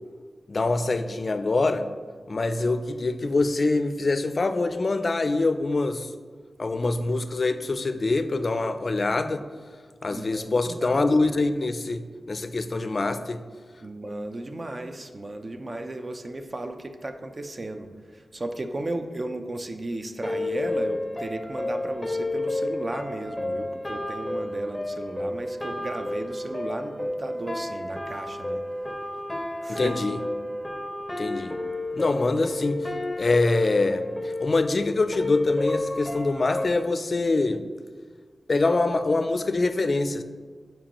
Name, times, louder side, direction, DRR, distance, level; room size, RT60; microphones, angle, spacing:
voice 1, 0.5-1.9 2.3-6.1 6.6-9.4 10.0-13.4 29.7-30.2 31.2-31.5 31.9-32.9 33.2-34.0 34.4-37.6 38.5-40.2, left 3 dB, 55° left, 9 dB, 0.4 m, -24 dB
voice 2, 10.1-11.0 13.8-28.6 29.6-30.0, right 2 dB, 40° right, 7 dB, 0.5 m, -35 dB
sound 1, 20.2-36.7, left 2 dB, 15° left, 0.6 m, -31 dB
7.4 x 4.6 x 3.0 m, 1.5 s
cardioid pair, 65°, 0 cm